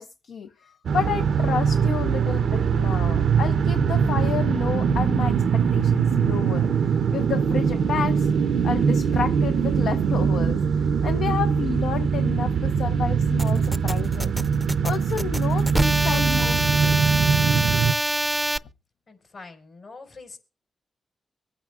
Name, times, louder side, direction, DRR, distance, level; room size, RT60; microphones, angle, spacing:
voice 1, 0.0-6.7 7.1-8.3 8.6-10.6 11.0-14.3 14.8-17.0 18.3-18.6, left 7 dB, 85° left, 0.6 m, -30 dB
sound 1, 0.9-17.9, right 6 dB, 75° right, 0.6 m, -22 dB
sound 2, 13.4-18.6, right 1 dB, 10° right, 0.5 m, -26 dB
voice 2, 19.1-20.4, left 3 dB, 65° left, 4.7 m, -44 dB
24.5 x 9.0 x 2.4 m
supercardioid pair, 50°, 0 cm